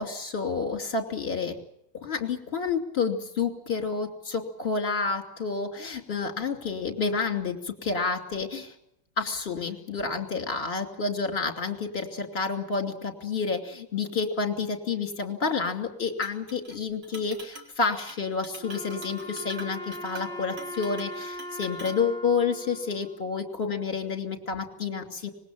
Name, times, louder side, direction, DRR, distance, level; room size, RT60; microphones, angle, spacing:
voice 1, 0.0-1.6 2.0-8.7 9.2-25.3, left 4 dB, 30° left, 4 dB, 2.9 m, -29 dB
Chink clink, 16.2-16.8 17.0-17.7 18.0-18.2 18.4-22.0, right 2 dB, 50° right, 3.5 m, -45 dB
Wind instrument woodwind instrument, 18.6-23.8, equal, 5° right, 3.4 m, -40 dB
25.5 x 20.5 x 7.4 m, 0.73 s
omnidirectional pair, 2.2 m